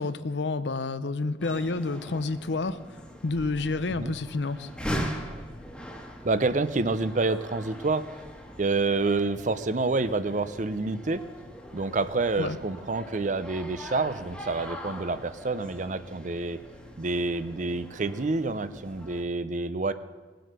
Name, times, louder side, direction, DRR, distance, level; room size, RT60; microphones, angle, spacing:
voice 1, 0.0-2.8 3.2-4.7 12.4-12.6, left 3 dB, 80° left, 13 dB, 0.7 m, -29 dB
sound 1, 1.4-19.2, equal, 5° left, 1.5 m, -41 dB
voice 2, 6.2-8.0 8.6-11.2 11.7-16.6 17.0-19.9, right 3 dB, 45° right, 13 dB, 0.6 m, -28 dB
19.0 x 7.8 x 6.6 m, 1.3 s
head